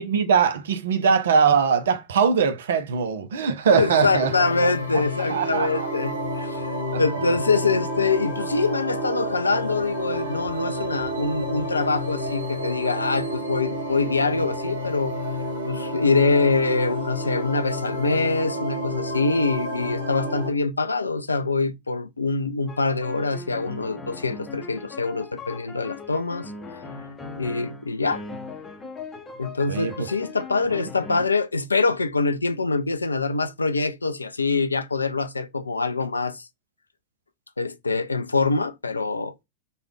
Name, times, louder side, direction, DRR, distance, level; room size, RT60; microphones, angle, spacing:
voice 1, 0.0-4.3 4.6-5.9 6.9-7.0 29.7-30.1, right 6 dB, 60° right, 0.5 m, -22 dB
voice 2, 3.7-15.2 15.6-26.5 27.4-28.2 29.4-36.5 37.6-39.3, left 3 dB, 80° left, 0.3 m, -24 dB
sound 1, 3.7-20.5, equal, 80° right, 1.0 m, -30 dB
sound 2, 22.7-31.3, left 3 dB, 15° left, 0.7 m, -39 dB
3.3 x 2.2 x 3.1 m
figure-of-eight pair, 90°, 0 cm